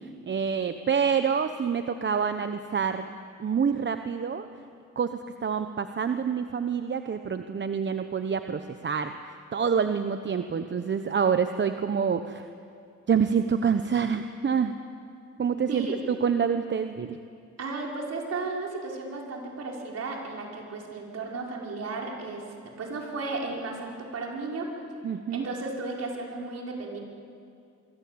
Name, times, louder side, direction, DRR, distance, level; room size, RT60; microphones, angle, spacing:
voice 1, 0.3-3.1 3.4-4.5 5.0-9.1 9.5-12.5 13.1-14.8 15.4-17.2 25.0-25.4, right 6 dB, 40° right, 8 dB, 1.0 m, -27 dB
voice 2, 17.6-24.7 25.3-27.0, right 3 dB, 55° right, -1 dB, 5.6 m, -34 dB
24.5 x 24.0 x 8.7 m, 2.5 s
cardioid pair, 90°, 30 cm